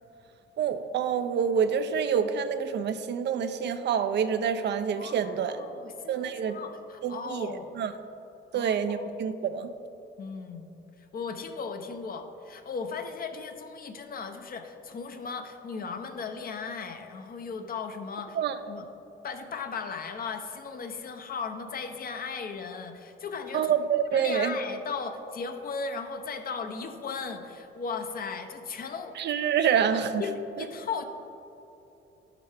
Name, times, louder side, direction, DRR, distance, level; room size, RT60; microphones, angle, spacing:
voice 1, 0.6-5.6 6.1-6.6 7.0-7.9 8.5-9.7 18.4-18.6 23.5-24.6 29.2-30.2, right 7 dB, 60° right, 10 dB, 0.5 m, -27 dB
voice 2, 5.0-7.7 8.5-9.1 10.2-10.7 11.0-18.4 18.7-18.8 19.2-23.8 24.1-29.1 30.2-31.0, left 5 dB, 45° left, 6 dB, 0.7 m, -37 dB
9.9 x 5.4 x 3.4 m, 3.0 s
cardioid pair, 90°, 20 cm